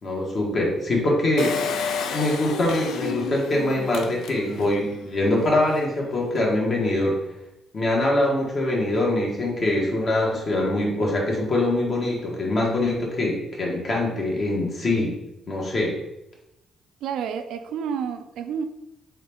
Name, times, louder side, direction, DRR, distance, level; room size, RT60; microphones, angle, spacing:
voice 1, 0.0-1.5 2.1-7.2 7.7-15.2 15.5-15.9, left 1 dB, 45° left, -2 dB, 1.4 m, -23 dB
Engine, 1.4-4.8 5.3-5.4 5.6-5.7, left 6 dB, 80° left, 0.4 m, -31 dB
voice 2, 17.0-18.6, right 7 dB, 85° right, 8 dB, 0.4 m, -29 dB
3.7 x 3.4 x 3.5 m, 0.89 s
cardioid pair, 90°, 0 cm